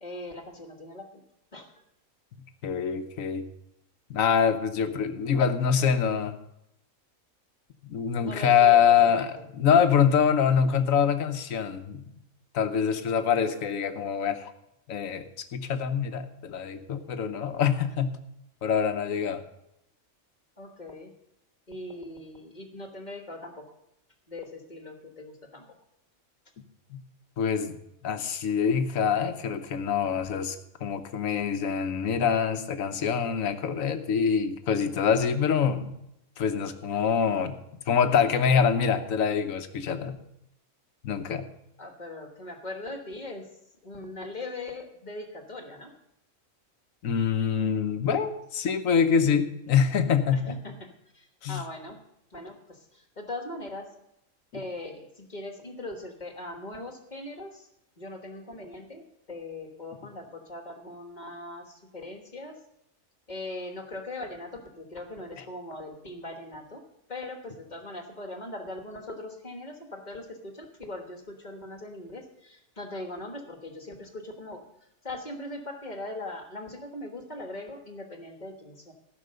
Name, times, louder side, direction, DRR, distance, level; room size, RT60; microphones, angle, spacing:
voice 1, 0.0-1.1 1.5-1.7 8.2-9.4 20.6-21.1 21.7-23.8 24.3-25.8 41.8-43.5 43.8-45.9 50.3-50.9 51.1-52.0 52.3-53.9 54.5-57.7 58.0-62.6 63.3-66.8 67.1-74.6 75.0-78.9, left 2 dB, 35° left, 4 dB, 1.5 m, -40 dB
voice 2, 2.6-3.4 4.1-6.4 7.8-9.3 9.6-12.0 12.5-14.5 14.9-18.2 18.6-19.4 26.9-27.0 27.4-27.8 28.0-36.0 36.4-37.6 37.9-40.2 41.0-41.5 47.0-50.6 51.4-51.6 54.5-54.6, left 7 dB, 80° left, 9 dB, 1.3 m, -25 dB
14.5 x 6.1 x 6.6 m, 0.82 s
omnidirectional pair, 1.4 m